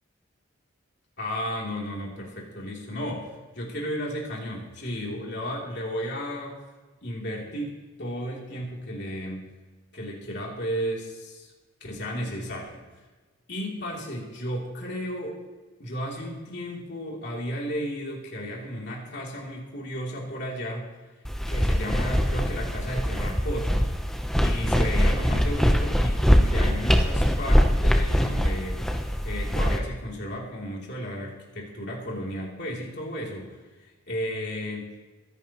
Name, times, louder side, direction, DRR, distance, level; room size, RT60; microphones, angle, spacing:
voice 1, 1.2-6.6 7.0-7.7 8.0-9.4 9.9-11.5 11.8-12.8 13.5-15.4 15.8-20.9 21.5-23.9 24.4-28.8 29.2-33.5 34.1-34.9, equal, 55° left, -3 dB, 3.3 m, -33 dB
sound 1, 21.2-29.8, equal, ahead, 0.8 m, -23 dB
23.5 x 11.0 x 3.1 m, 1.3 s
head